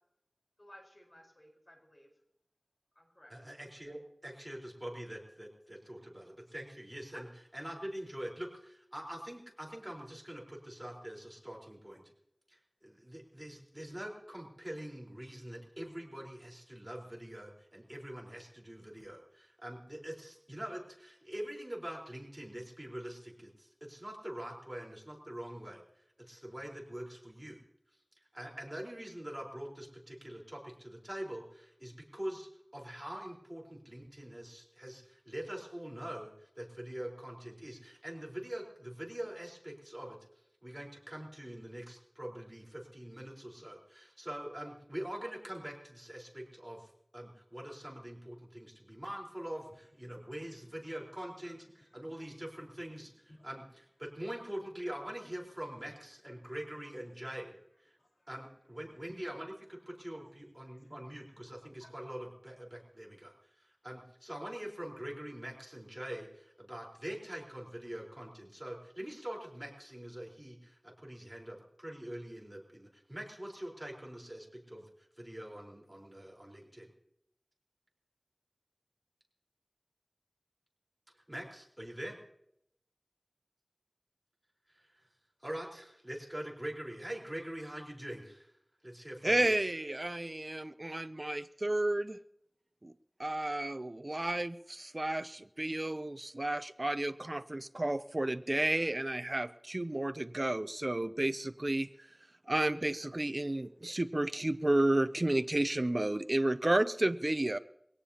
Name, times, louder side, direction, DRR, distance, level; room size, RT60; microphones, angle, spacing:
voice 1, 0.6-2.1 3.0-3.3 7.1-7.3 53.4-53.5 58.0-58.1 61.8-61.9, left 1 dB, 50° left, -1 dB, 4.4 m, -55 dB
voice 2, 3.3-7.3 7.5-12.1 12.5-25.8 26.2-27.6 28.3-40.2 40.6-57.5 57.8-58.0 58.3-76.9 81.3-82.2 84.7-85.1 85.4-88.5 88.8-89.5, right 1 dB, 20° right, -2 dB, 4.2 m, -44 dB
voice 3, 89.2-92.2 92.8-92.9 93.2-101.9 102.5-107.6, right 1 dB, 45° right, 12 dB, 0.5 m, -32 dB
23.0 x 17.0 x 2.9 m, 0.75 s
wide cardioid pair, 45°, 0 cm